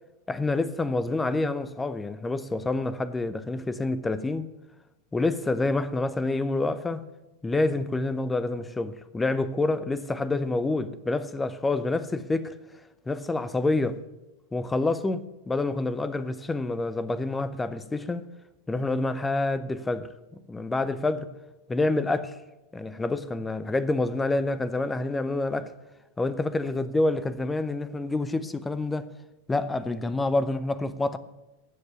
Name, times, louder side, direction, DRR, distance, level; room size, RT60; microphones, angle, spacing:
voice 1, 0.3-4.5 5.1-7.0 7.4-12.5 13.1-14.0 14.5-18.2 18.7-20.1 20.5-21.3 21.7-22.4 22.7-25.7 26.2-29.1 29.5-31.2, left 2 dB, 10° left, 0.7 m, -27 dB
14.0 x 8.0 x 7.0 m
figure-of-eight pair, 90°, 0 cm